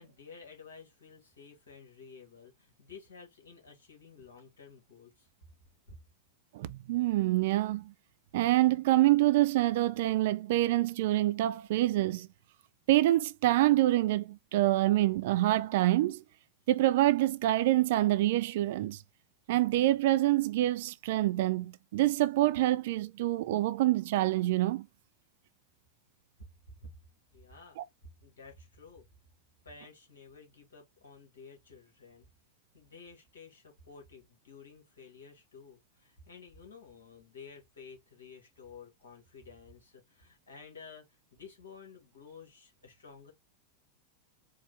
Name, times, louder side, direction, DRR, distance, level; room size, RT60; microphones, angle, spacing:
voice 1, 0.0-5.3 5.9-6.0 26.7-26.9 27.3-27.9 28.2-29.1 29.6-32.3 32.7-43.3, left 5 dB, 65° left, 2.0 m, -52 dB
voice 2, 6.5-7.9 8.3-12.3 12.9-16.2 16.7-19.0 19.5-24.9 27.8-27.9, right 15 dB, 55° right, 0.3 m, -26 dB
4.7 x 2.4 x 3.3 m
figure-of-eight pair, 90°, 0 cm